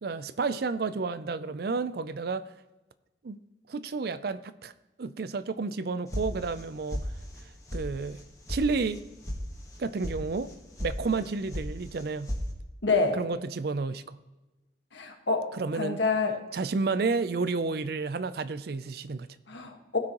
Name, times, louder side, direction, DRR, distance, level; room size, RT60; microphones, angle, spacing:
voice 1, 0.0-2.4 3.2-3.4 3.7-4.7 5.0-7.1 7.7-8.2 8.5-9.0 9.8-10.5 10.8-12.3 13.2-14.2 15.5-16.0 16.5-19.3, right 4 dB, 55° right, 14 dB, 0.4 m, -31 dB
sound 1, 6.1-6.6 6.9-7.4 7.7-7.8 8.2-8.6 8.9-9.4 9.7-10.1 10.5-10.9 11.2-11.7 11.9-12.4, equal, 15° left, 1.3 m, -34 dB
voice 2, 12.8-13.2 14.9-16.3 19.5-20.0, left 4 dB, 70° left, 4 dB, 1.6 m, -27 dB
17.0 x 6.2 x 3.0 m, 1.1 s
head